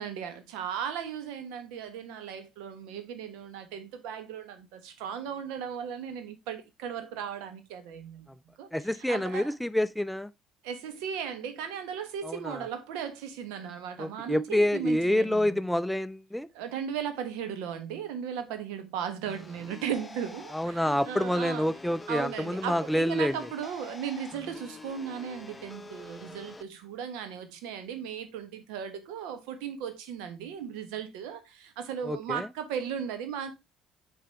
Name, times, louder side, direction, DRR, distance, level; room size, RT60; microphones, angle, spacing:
voice 1, 0.0-8.3 8.6-9.5 10.6-15.6 16.5-21.7 22.1-33.6, right 8 dB, 70° right, 1.3 m, -36 dB
voice 2, 8.7-10.3 12.2-12.7 14.0-16.5 20.5-23.3 32.1-32.5, left 1 dB, 5° left, 0.4 m, -27 dB
sound 1, 19.3-26.6, left 2 dB, 20° left, 0.8 m, -46 dB
8.2 x 4.8 x 3.4 m
hypercardioid pair, 55°, 0 cm